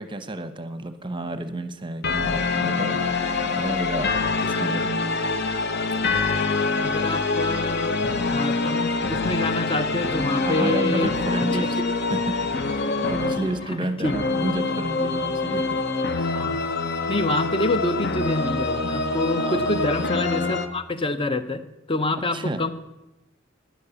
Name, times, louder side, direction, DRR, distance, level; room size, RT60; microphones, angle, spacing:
voice 1, 0.0-4.2 4.4-5.4 10.4-11.8 12.1-15.8 16.1-16.3 19.4-19.8 22.3-22.7, right 2 dB, 25° right, 10 dB, 0.9 m, -31 dB
sound 1, 2.0-20.7, left 3 dB, 50° left, 0.9 m, -25 dB
voice 2, 6.8-11.1 11.6-11.7 14.0-14.2 16.3-16.6 17.1-21.6 21.9-22.7, left 2 dB, 25° left, 11 dB, 0.8 m, -26 dB
12.0 x 10.5 x 7.0 m, 0.94 s
head